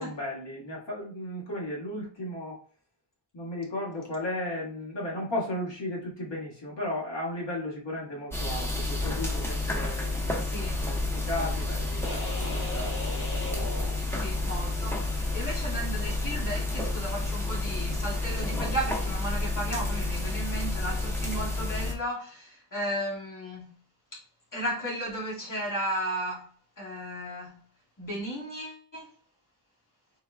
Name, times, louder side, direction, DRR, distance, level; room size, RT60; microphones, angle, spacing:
voice 1, 0.0-2.6 3.3-10.2 10.6-13.1, left 1 dB, 90° left, 1.8 m, -35 dB
sound 1, 8.3-21.9, left 2 dB, 5° left, 1.2 m, -30 dB
voice 2, 10.5-10.8 13.9-23.8 24.1-24.2 24.5-26.5 26.8-27.6 28.0-29.1, right 1 dB, 50° left, 2.2 m, -35 dB
sound 2, 12.0-14.7, left 1 dB, 65° left, 1.6 m, -38 dB
4.6 x 4.3 x 2.3 m
wide cardioid pair, 75°, 41 cm